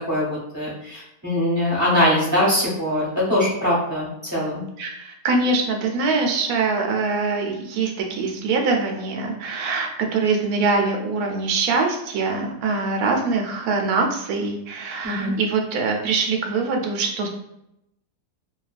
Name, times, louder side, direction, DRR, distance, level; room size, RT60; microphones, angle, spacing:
voice 1, 0.1-4.6 15.0-15.3, left 1 dB, 15° right, -6 dB, 0.7 m, -22 dB
voice 2, 4.8-17.3, right 4 dB, 75° right, 2 dB, 1.1 m, -23 dB
2.8 x 2.3 x 2.4 m, 0.81 s
omnidirectional pair, 1.7 m